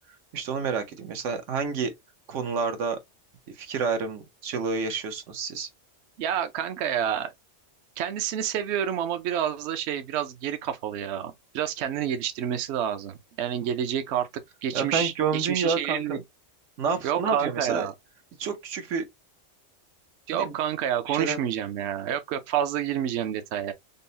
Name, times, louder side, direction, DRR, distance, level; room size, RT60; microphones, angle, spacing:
voice 1, 0.3-1.9 2.3-3.0 3.6-5.7 14.7-16.2 16.8-17.9 18.4-19.0 20.3-20.5 21.1-21.4, right 5 dB, 85° right, 1.2 m, -29 dB
voice 2, 6.2-7.3 8.0-16.2 17.0-17.9 20.3-23.7, right 9 dB, 70° right, 0.8 m, -29 dB
5.3 x 2.0 x 2.7 m
omnidirectional pair, 1.2 m